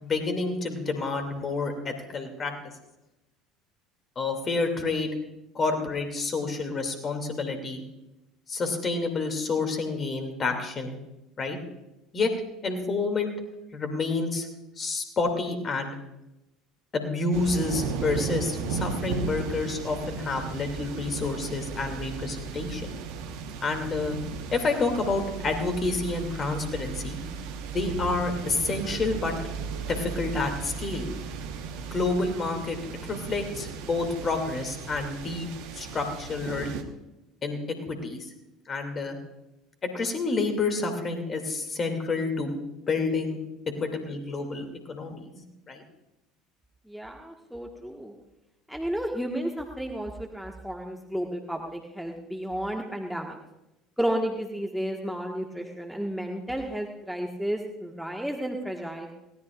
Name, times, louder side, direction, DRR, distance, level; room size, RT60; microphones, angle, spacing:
voice 1, 0.0-2.5 4.2-5.2 5.5-7.8 8.5-11.0 11.4-11.6 12.1-12.3 12.6-13.3 13.7-14.5 14.8-16.0 16.9-22.9 23.6-24.2 24.5-27.4 27.7-29.3 29.9-31.1 31.9-32.8 33.1-35.5 35.7-36.8 37.4-37.6 37.9-38.2 38.7-39.2 39.8-42.6 42.9-43.4 43.8-45.8, left 3 dB, 30° left, 5 dB, 2.6 m, -29 dB
sound 1, 17.3-36.8, right 5 dB, 60° right, 1.2 m, -35 dB
voice 2, 46.9-48.1 48.7-53.4 54.0-59.1, right 1 dB, ahead, 1 dB, 1.6 m, -32 dB
20.5 x 17.0 x 2.5 m, 0.95 s
figure-of-eight pair, 65°, 0 cm